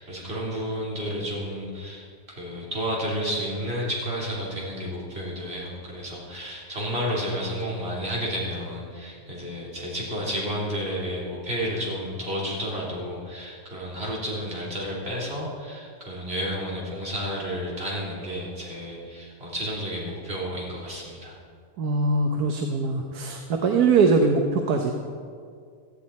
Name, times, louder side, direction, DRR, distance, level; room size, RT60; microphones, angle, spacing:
voice 1, 0.0-21.4, equal, 40° right, -5 dB, 3.7 m, -31 dB
voice 2, 21.8-24.9, right 4 dB, 80° right, 3 dB, 1.5 m, -22 dB
17.0 x 13.5 x 4.2 m, 2.1 s
omnidirectional pair, 1.6 m